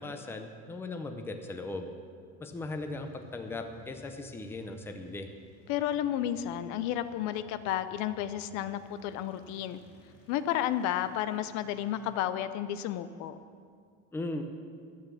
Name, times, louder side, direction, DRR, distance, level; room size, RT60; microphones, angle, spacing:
voice 1, 0.0-1.9 2.4-5.3 14.1-14.4, left 2 dB, 5° left, 5 dB, 0.6 m, -38 dB
sound 1, 2.5-13.6, left 1 dB, 85° left, 3.6 m, -58 dB
voice 2, 5.7-9.8 10.3-13.4, left 11 dB, 55° left, 12 dB, 0.6 m, -32 dB
12.5 x 9.1 x 7.1 m, 2.2 s
cardioid pair, 165°, 35 cm